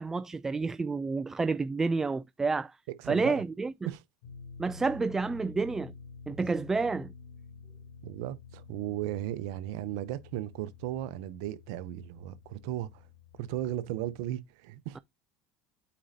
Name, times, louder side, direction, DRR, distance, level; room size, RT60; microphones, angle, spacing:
voice 1, 0.0-2.8 3.1-3.9 4.6-5.9 6.3-7.1 14.9-15.0, right 4 dB, 20° right, 0.3 m, -29 dB
voice 2, 3.0-3.4 3.9-4.0 8.0-13.0 13.4-15.0, right 13 dB, 80° right, 0.7 m, -36 dB
sound 1, 4.2-14.3, left 5 dB, 85° left, 2.8 m, -50 dB
8.6 x 5.0 x 2.7 m
supercardioid pair, 90°, 2 cm